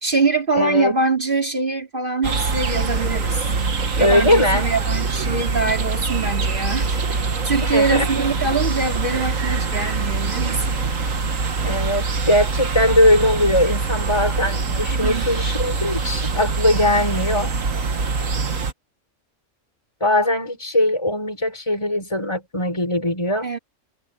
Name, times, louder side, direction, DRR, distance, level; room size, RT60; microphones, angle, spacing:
voice 1, 0.0-3.4 4.0-7.0 7.4-10.8 14.9-15.4 23.4-23.6, right 3 dB, 40° right, 3.4 m, -23 dB
voice 2, 0.6-0.9 4.0-4.7 7.6-8.1 11.6-17.5 20.0-23.5, left 1 dB, 20° left, 5.8 m, -20 dB
sound 1, 2.2-18.7, right 4 dB, 85° right, 2.1 m, -24 dB
omnidirectional pair, 1.3 m